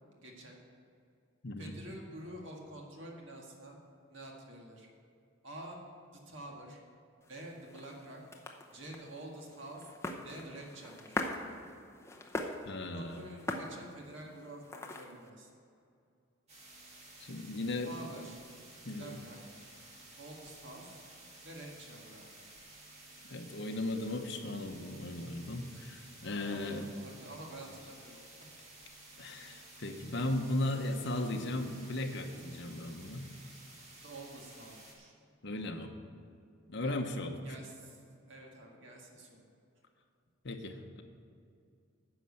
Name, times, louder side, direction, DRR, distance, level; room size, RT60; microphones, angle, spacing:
voice 1, 0.2-0.6 1.6-3.8 4.1-4.9 5.4-5.9 6.1-6.8 7.3-8.2 8.7-9.9 10.2-11.2 12.9-15.5 17.8-18.4 18.9-19.4 20.2-21.0 21.4-22.3 26.3-28.2 29.3-29.6 34.0-35.2 36.8-38.0 38.3-39.3, right 1 dB, 60° right, -1 dB, 1.7 m, -48 dB
voice 2, 1.4-1.7 12.7-13.2 17.2-17.9 18.8-19.1 23.3-26.8 29.2-33.3 35.4-35.9 36.7-37.4 40.4-41.0, left 1 dB, 55° left, 4 dB, 0.9 m, -36 dB
sound 1, 7.2-15.3, left 2 dB, 15° left, 0.7 m, -42 dB
sound 2, 16.5-34.9, right 2 dB, 30° right, 2.1 m, -54 dB
10.0 x 6.5 x 8.4 m, 2.4 s
head